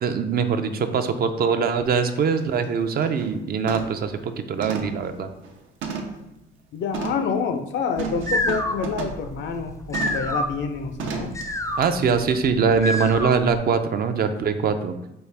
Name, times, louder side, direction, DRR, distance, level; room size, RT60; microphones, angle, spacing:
voice 1, 0.0-5.3 11.8-14.9, right 6 dB, 50° right, 8 dB, 0.4 m, -22 dB
sound 1, 1.9-2.0 2.4-2.7 3.0-3.3 3.7-4.1 4.6-6.3 6.9-7.3 8.0-9.3 9.9-10.3 11.0-11.4 11.8-11.9, right 5 dB, 85° right, 0.7 m, -32 dB
voice 2, 6.7-11.3, left 5 dB, 70° left, 8 dB, 0.5 m, -28 dB
sound 2, 8.0-13.6, left 1 dB, 15° left, 0.4 m, -29 dB
5.4 x 2.3 x 3.3 m, 0.87 s
cardioid pair, 90°, 20 cm